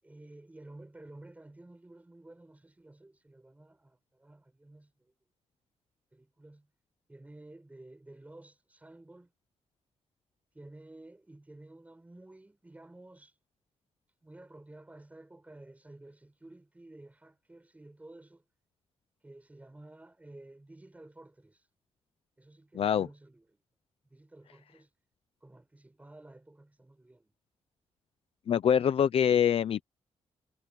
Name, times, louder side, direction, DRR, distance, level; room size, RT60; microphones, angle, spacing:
voice 1, 0.0-5.1 6.1-6.7 7.1-9.3 10.5-13.3 14.2-18.4 19.2-21.7 22.4-23.6 24.1-24.9 25.4-27.3, right 2 dB, 15° right, 6.6 m, -52 dB
voice 2, 22.8-23.1 28.5-29.8, left 8 dB, 60° left, 0.7 m, -24 dB
cardioid pair, 105°, 11 cm